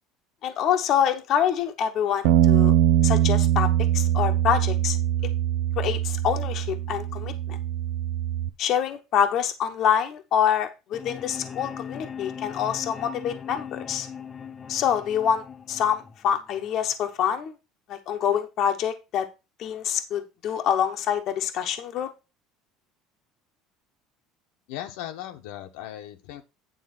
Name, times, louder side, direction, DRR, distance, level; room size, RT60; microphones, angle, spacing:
voice 1, 0.4-2.7 3.0-5.0 5.8-7.6 8.6-14.1 14.7-17.5 17.9-19.3 19.6-22.1, left 8 dB, 45° left, 6 dB, 1.0 m, -26 dB
Bass guitar, 2.2-8.5, right 12 dB, 85° right, 0.7 m, -22 dB
sound 1, 10.9-16.9, left 7 dB, 20° left, 0.6 m, -39 dB
voice 2, 24.7-26.4, left 12 dB, 85° left, 5 dB, 1.2 m, -37 dB
9.4 x 3.7 x 6.0 m, 0.27 s
cardioid pair, 150°, 0 cm